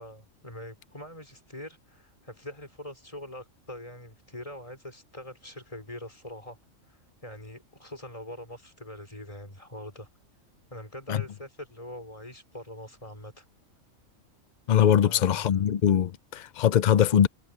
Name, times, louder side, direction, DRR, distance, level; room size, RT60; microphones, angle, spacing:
voice 1, 0.0-6.6 6.8-10.1 10.7-13.4 15.0-15.7, left 1 dB, 25° left, 5.1 m, -43 dB
voice 2, 14.7-17.3, left 9 dB, 65° left, 0.4 m, -22 dB
omnidirectional pair, 1.4 m